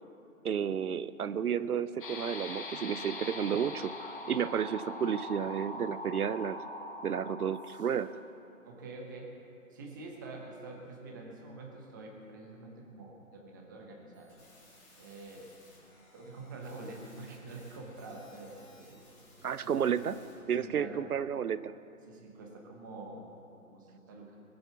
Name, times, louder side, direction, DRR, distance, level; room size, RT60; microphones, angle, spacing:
voice 1, 0.4-6.6 7.0-8.1 19.4-20.2 20.5-21.7, right 8 dB, 80° right, 14 dB, 0.7 m, -32 dB
sound 1, 2.0-8.1, left 2 dB, 35° left, 1.6 m, -42 dB
voice 2, 8.6-9.3 9.7-14.3 15.0-15.6 16.1-19.0 19.6-20.0 20.6-21.0 22.1-23.2 23.7-24.4, right 2 dB, 15° right, 0 dB, 1.0 m, -46 dB
sound 2, 14.1-20.4, left 1 dB, 10° left, 2.4 m, -59 dB
21.0 x 7.9 x 7.1 m, 2.7 s
hypercardioid pair, 160°, 44 cm